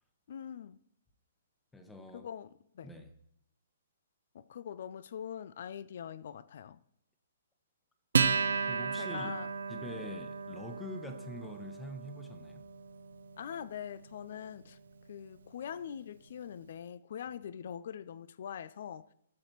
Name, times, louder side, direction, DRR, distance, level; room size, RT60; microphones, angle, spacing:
voice 1, 0.3-0.8 2.1-2.9 4.3-6.8 9.0-9.5 13.4-14.8 15.1-19.1, left 8 dB, 60° left, 0.5 m, -43 dB
voice 2, 1.7-2.3 2.8-3.1 8.7-9.3 9.7-12.7, left 1 dB, 10° left, 1.1 m, -45 dB
Acoustic guitar, 8.1-15.0, right 5 dB, 70° right, 0.7 m, -35 dB
16.5 x 6.5 x 3.0 m
figure-of-eight pair, 125°, 0 cm